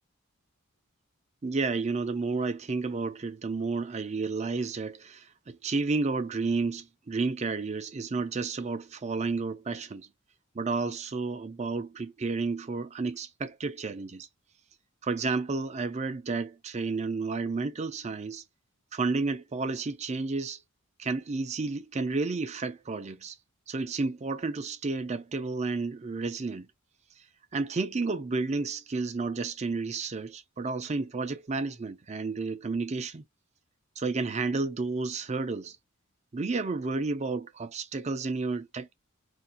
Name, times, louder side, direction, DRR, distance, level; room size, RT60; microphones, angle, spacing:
voice 1, 1.4-10.1 10.5-14.3 15.0-18.4 18.9-20.6 21.0-23.4 23.7-26.7 27.5-33.2 34.0-35.8 36.3-38.9, right 3 dB, 30° right, 0.4 m, -31 dB
2.5 x 2.3 x 3.9 m
head